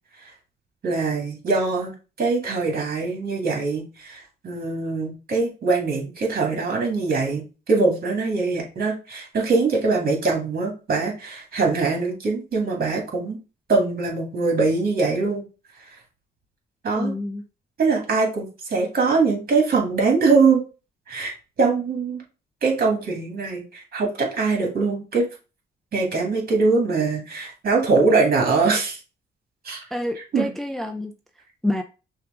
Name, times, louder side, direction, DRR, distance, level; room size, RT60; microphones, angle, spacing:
voice 1, 0.8-1.9 2.2-13.4 13.7-15.4 16.8-17.1 17.8-20.6 21.1-22.2 22.6-25.3 25.9-29.0 29.6-29.8 30.3-30.5, right 4 dB, 50° right, 2.0 m, -22 dB
voice 2, 17.0-17.4 29.9-31.1 31.6-31.8, left 1 dB, ahead, 0.5 m, -27 dB
5.7 x 2.5 x 3.7 m
cardioid pair, 90°, 20 cm